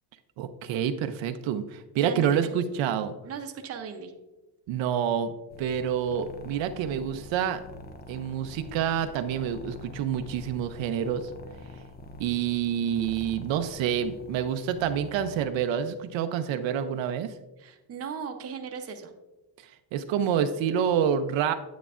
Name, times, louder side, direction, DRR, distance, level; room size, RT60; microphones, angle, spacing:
voice 1, 0.4-3.1 4.7-5.3 5.6-7.6 8.1-11.3 12.2-17.3 19.9-21.5, right 8 dB, 70° right, 8 dB, 0.6 m, -27 dB
voice 2, 3.2-4.1 17.6-19.1, right 6 dB, 30° right, 5 dB, 0.7 m, -37 dB
sound 1, 5.5-15.5, left 3 dB, 25° left, 0.3 m, -45 dB
9.2 x 8.2 x 2.4 m, 1.1 s
cardioid pair, 170°, 47 cm